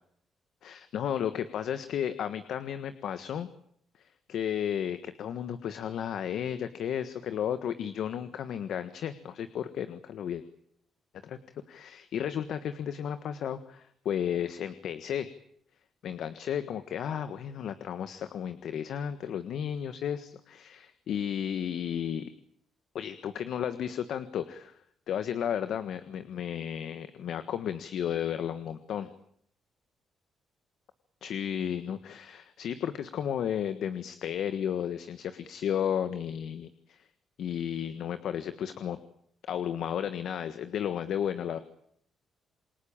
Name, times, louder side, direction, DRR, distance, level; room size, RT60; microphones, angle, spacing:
voice 1, 0.6-3.5 4.0-10.4 11.2-11.4 11.7-15.3 16.0-22.3 22.9-24.8 25.1-29.1 31.2-37.1 37.4-39.0 39.5-41.6, left 9 dB, 70° left, 11 dB, 1.5 m, -33 dB
28.0 x 22.0 x 8.9 m, 0.70 s
cardioid pair, 90°, 0 cm